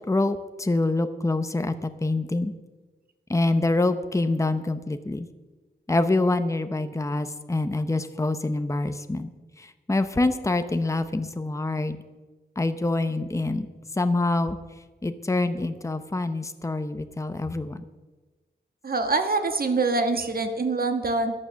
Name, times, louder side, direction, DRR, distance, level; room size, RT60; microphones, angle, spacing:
voice 1, 0.1-2.5 3.3-5.3 5.9-9.3 9.6-12.0 12.6-13.7 13.9-14.6 15.0-17.8, left 2 dB, 15° left, 10 dB, 0.8 m, -26 dB
voice 2, 18.8-21.3, right 3 dB, 55° right, 7 dB, 1.4 m, -24 dB
13.5 x 9.8 x 6.3 m, 1.2 s
wide cardioid pair, 95°, 18 cm